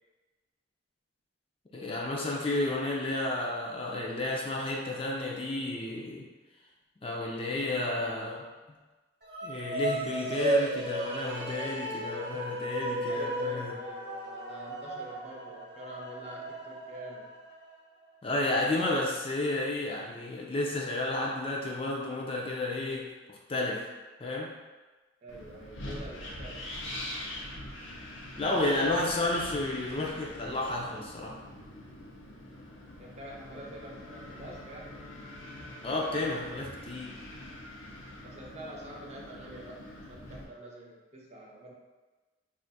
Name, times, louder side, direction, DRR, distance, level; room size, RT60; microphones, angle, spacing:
voice 1, 1.7-6.3 7.0-8.5 9.4-13.8 18.2-23.9 24.2-24.6 28.4-31.4 35.8-37.2, left 2 dB, 30° left, -2 dB, 0.4 m, -32 dB
sound 1, 9.2-17.7, right 1 dB, 55° right, 0.8 m, -34 dB
voice 2, 13.1-17.3 25.2-26.7 33.0-35.1 38.2-41.7, right 1 dB, 35° right, -2 dB, 0.5 m, -46 dB
Wind, 25.3-40.4, left 1 dB, 90° left, 0.7 m, -44 dB
Bowed string instrument, 33.2-38.3, left 4 dB, 65° left, 0.9 m, -56 dB
2.5 x 2.4 x 3.9 m, 1.2 s
head